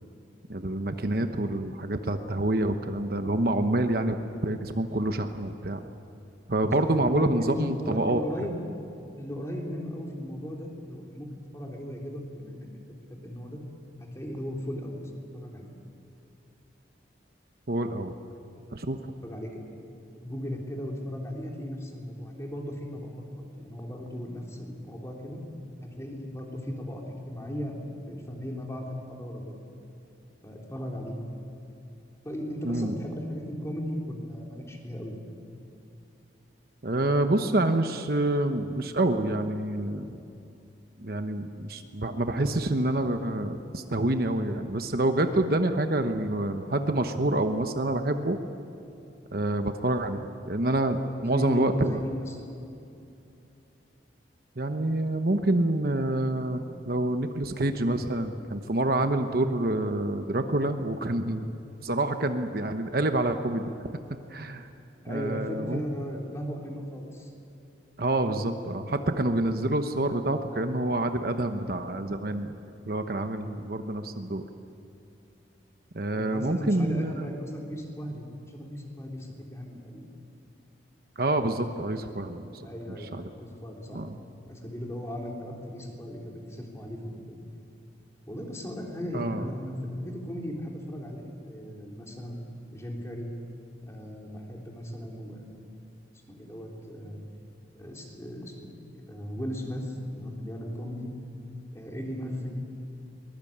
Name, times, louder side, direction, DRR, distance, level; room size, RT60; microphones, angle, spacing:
voice 1, 0.5-4.2 4.4-5.8 6.5-8.2 17.7-18.1 18.7-19.0 32.6-32.9 36.8-40.2 41.0-48.4 49.3-52.0 54.6-61.5 61.8-63.7 64.3-64.7 65.1-65.8 68.0-72.6 72.9-74.4 75.9-77.3 81.2-82.6 83.1-83.3 83.9-84.2 89.1-89.5, right 1 dB, 55° right, 7 dB, 1.0 m, -27 dB
voice 2, 7.1-8.6 9.1-11.3 11.5-12.8 13.1-13.6 14.1-15.0 15.3-15.7 19.2-19.6 20.2-25.4 25.8-29.6 30.4-31.2 32.2-35.2 51.2-52.4 65.0-67.3 76.1-80.0 82.6-83.1 83.4-84.0 84.5-87.0 87.3-87.4 88.3-92.4 92.7-93.3 93.8-95.7 96.3-97.2 97.7-101.1 101.7-102.6, equal, 15° left, -1 dB, 3.6 m, -37 dB
23.5 x 21.5 x 8.7 m, 2.7 s
head